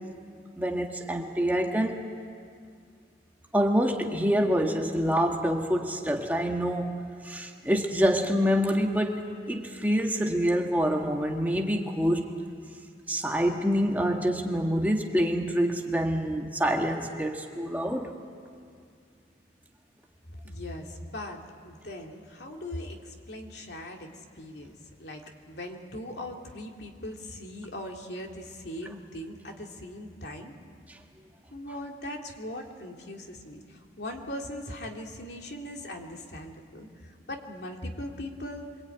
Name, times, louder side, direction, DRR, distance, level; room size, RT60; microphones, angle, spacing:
voice 1, 0.6-2.1 3.5-9.2 9.5-12.3 13.1-18.1 30.9-31.0, equal, 10° right, 2 dB, 1.5 m, -26 dB
voice 2, 20.4-30.5 31.5-38.7, left 1 dB, 65° left, 2 dB, 2.6 m, -40 dB
27.5 x 23.0 x 9.1 m, 2.3 s
head